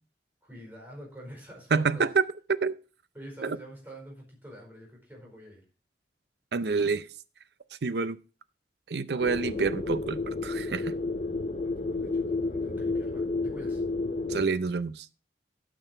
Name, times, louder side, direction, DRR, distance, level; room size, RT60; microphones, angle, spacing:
voice 1, 0.4-2.1 3.1-5.6 9.1-9.3 11.6-13.8, right 1 dB, 10° right, 4.9 m, -46 dB
voice 2, 1.7-2.2 2.5-2.7 3.4-3.6 6.5-7.1 7.8-8.2 8.9-10.9 14.3-15.1, right 4 dB, 70° right, 0.6 m, -27 dB
sound 1, 9.2-14.5, left 3 dB, 40° left, 0.5 m, -31 dB
12.5 x 6.1 x 4.4 m
head